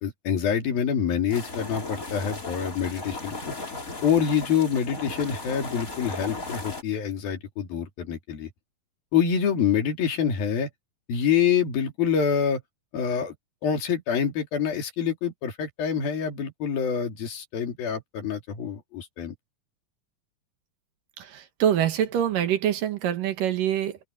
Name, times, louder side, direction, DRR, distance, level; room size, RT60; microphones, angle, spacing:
voice 1, 0.0-3.5 4.0-8.5 9.1-10.7 11.1-12.6 12.9-13.3 13.6-19.3, left 7 dB, 80° left, 4.7 m, -26 dB
sound 1, 1.3-6.8, left 3 dB, 20° left, 4.1 m, -36 dB
voice 2, 21.2-24.0, right 10 dB, 70° right, 3.1 m, -25 dB
open air
omnidirectional pair, 4.1 m